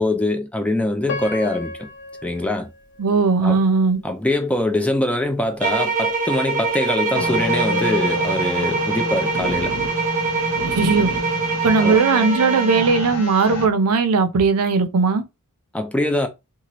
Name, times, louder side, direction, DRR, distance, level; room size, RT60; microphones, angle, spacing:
voice 1, 0.0-1.9 2.2-2.7 3.4-3.6 4.0-9.7 11.8-12.0 15.7-16.3, left 1 dB, 5° left, 0.4 m, -23 dB
Piano, 1.1-4.1 4.7-4.8 5.4-5.6, left 3 dB, 55° left, 0.5 m, -35 dB
voice 2, 3.0-4.0 10.6-11.1 11.6-15.2, right 4 dB, 85° right, 0.5 m, -18 dB
sound 1, 5.6-13.0, right 4 dB, 35° right, 0.8 m, -24 dB
sound 2, 7.1-13.6, left 1 dB, 90° left, 0.9 m, -28 dB
2.8 x 2.4 x 2.9 m
head